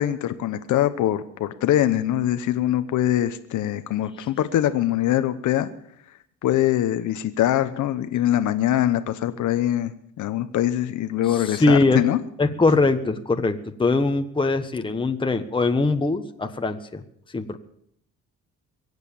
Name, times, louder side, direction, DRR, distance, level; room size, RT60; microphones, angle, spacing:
voice 1, 0.0-5.7 6.4-9.9 10.2-12.2, left 12 dB, 80° left, 10 dB, 1.1 m, -23 dB
voice 2, 11.3-12.0 12.4-17.0 17.3-17.6, left 3 dB, 15° left, 6 dB, 1.3 m, -22 dB
23.0 x 8.2 x 7.2 m, 0.70 s
cardioid pair, 90°, 30 cm